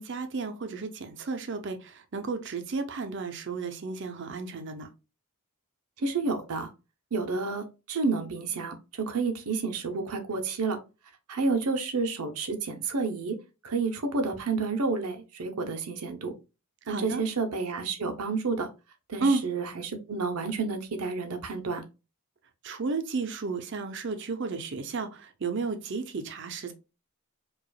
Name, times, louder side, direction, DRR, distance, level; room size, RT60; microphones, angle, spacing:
voice 1, 0.0-4.9 16.9-17.2 19.2-19.4 22.6-26.7, right 4 dB, 55° right, 0.6 m, -32 dB
voice 2, 6.0-6.7 7.1-10.8 11.3-13.3 13.6-16.3 16.9-18.7 19.1-21.8, right 4 dB, 85° right, 0.8 m, -30 dB
4.8 x 2.4 x 2.3 m
head